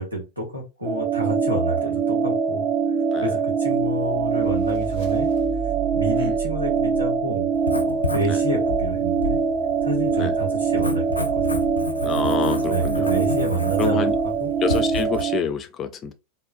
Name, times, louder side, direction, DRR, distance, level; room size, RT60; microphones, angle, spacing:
voice 1, 0.0-2.7 3.2-5.3 5.9-7.5 7.8-9.4 9.8-11.4 12.7-14.5, right 1 dB, 85° right, 1.1 m, -29 dB
sound 1, 0.9-15.4, right 5 dB, 25° right, 0.5 m, -23 dB
sound 2, 3.8-8.0, right 12 dB, 60° right, 1.5 m, -35 dB
Writing, 7.5-15.2, left 2 dB, 80° left, 0.5 m, -31 dB
voice 2, 12.0-13.1 13.8-14.2 14.6-16.1, left 6 dB, 30° left, 0.4 m, -28 dB
3.8 x 2.0 x 2.6 m
figure-of-eight pair, 90°, 0 cm